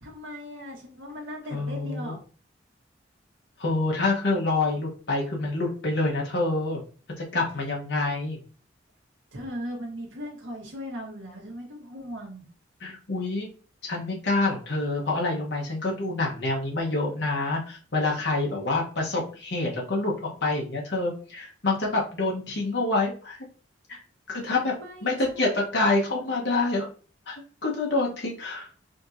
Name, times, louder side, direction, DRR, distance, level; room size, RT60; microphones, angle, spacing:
voice 1, 0.0-2.2 9.3-12.4 24.4-25.5 25.8-26.2, equal, 90° right, -1 dB, 1.3 m, -39 dB
voice 2, 1.5-2.1 3.6-6.8 7.2-8.4 12.8-13.5 13.8-20.1 20.4-23.5 23.9-24.0 24.3-24.7 25.0-26.9 27.3-28.7, left 2 dB, 60° left, -2 dB, 0.9 m, -27 dB
5.1 x 2.8 x 2.5 m, 0.39 s
head